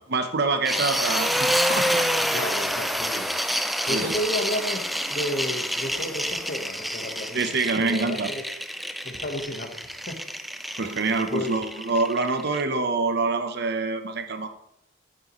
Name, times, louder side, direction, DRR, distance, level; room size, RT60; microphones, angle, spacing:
voice 1, 0.1-2.5 3.1-3.2 3.9-4.2 7.3-8.3 10.8-14.5, right 3 dB, 60° right, 8 dB, 1.0 m, -26 dB
sound 1, 0.6-12.6, equal, ahead, 0.3 m, -28 dB
voice 2, 2.3-3.3 3.8-8.4 9.0-9.8 10.1-10.2 11.3-11.5, left 1 dB, 45° left, 4 dB, 1.4 m, -32 dB
9.6 x 8.9 x 3.2 m, 0.77 s
head